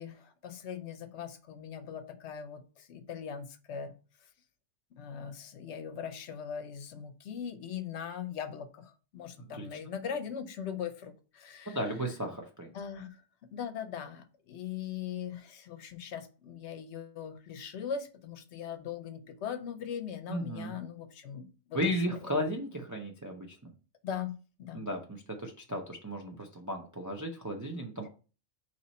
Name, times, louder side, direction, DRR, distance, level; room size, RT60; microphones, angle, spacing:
voice 1, 0.0-3.9 5.0-11.8 12.7-13.2 13.5-21.8 24.0-24.9, left 8 dB, 70° left, 10 dB, 0.9 m, -40 dB
voice 2, 9.4-9.8 11.7-12.7 20.3-20.8 21.7-23.7 24.7-28.1, equal, 30° right, 1 dB, 0.3 m, -35 dB
4.1 x 3.0 x 4.1 m, 0.35 s
omnidirectional pair, 1.3 m